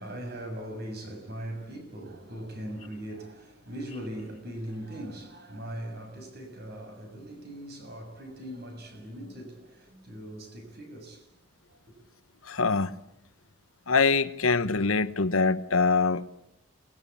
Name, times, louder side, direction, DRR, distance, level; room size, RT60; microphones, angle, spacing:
voice 1, 0.0-11.3 11.7-11.8, right 1 dB, 50° right, 6.8 m, -40 dB
voice 2, 12.4-13.0 13.9-16.5, left 4 dB, 85° left, 1.1 m, -24 dB
29.0 x 20.5 x 8.6 m
head